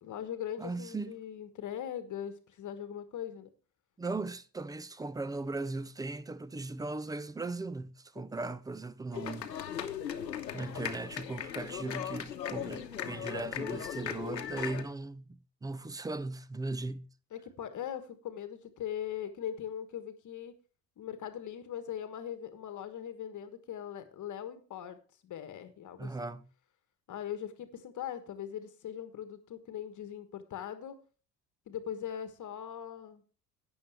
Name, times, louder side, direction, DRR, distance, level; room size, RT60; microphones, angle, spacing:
voice 1, 0.0-3.5 8.2-8.3 12.5-12.6 17.3-20.5 21.0-25.0 25.2-26.1 27.1-31.0 31.7-33.2, left 9 dB, 35° left, 1.4 m, -40 dB
voice 2, 0.6-1.2 4.0-9.5 10.5-17.1 26.0-26.5, right 3 dB, 10° right, 0.4 m, -38 dB
sound 1, 9.1-14.8, left 9 dB, 85° left, 1.1 m, -38 dB
12.5 x 8.9 x 3.4 m
figure-of-eight pair, 65°, 49 cm